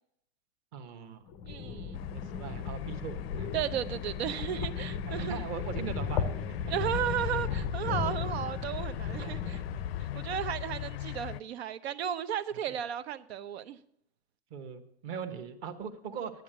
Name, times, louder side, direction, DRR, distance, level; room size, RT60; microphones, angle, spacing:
voice 1, 0.7-1.2 2.1-3.5 4.8-6.7 9.2-9.8 10.1-10.4 12.7-12.8 14.5-16.4, right 7 dB, 30° right, 1.1 m, -41 dB
sound 1, 1.3-10.5, left 5 dB, 15° left, 0.4 m, -36 dB
voice 2, 1.5-2.0 3.5-5.4 6.7-9.6 10.0-13.8, right 9 dB, 80° right, 1.0 m, -34 dB
sound 2, 1.9-11.4, left 13 dB, 75° left, 0.5 m, -39 dB
10.5 x 9.1 x 8.8 m
supercardioid pair, 180°, 31 cm